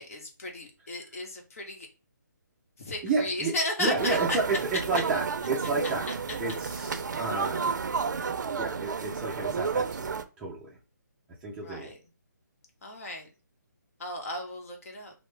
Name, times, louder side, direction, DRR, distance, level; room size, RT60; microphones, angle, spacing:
voice 1, 0.0-1.9 2.8-4.4 11.6-12.0 12.8-13.3 14.0-15.1, left 2 dB, 45° left, 3 dB, 1.0 m, -34 dB
voice 2, 3.0-6.1 6.4-7.7 8.6-10.8 11.4-11.9, right 3 dB, 10° right, -4 dB, 0.4 m, -31 dB
sound 1, 4.0-10.2, right 5 dB, 70° right, 0.5 m, -31 dB
3.0 x 2.0 x 3.2 m, 0.32 s
hypercardioid pair, 155°, 10 cm